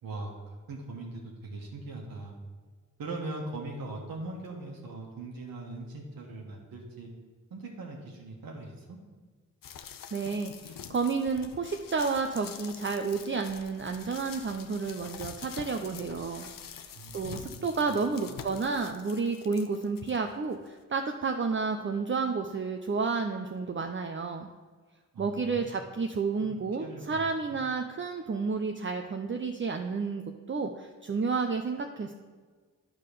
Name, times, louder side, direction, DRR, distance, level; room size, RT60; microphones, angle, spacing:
voice 1, 0.0-2.4 3.0-7.1 7.5-9.0 16.9-17.6 18.3-18.4 25.1-25.7 26.4-27.6, right 2 dB, 90° right, -2 dB, 1.3 m, -41 dB
sound 1, 9.6-20.2 20.7-20.8, left 7 dB, 70° left, 0.7 m, -46 dB
voice 2, 10.1-16.5 17.1-24.5 25.2-32.1, right 4 dB, 35° right, 4 dB, 0.6 m, -31 dB
9.6 x 3.8 x 6.7 m, 1.5 s
cardioid pair, 55°, 34 cm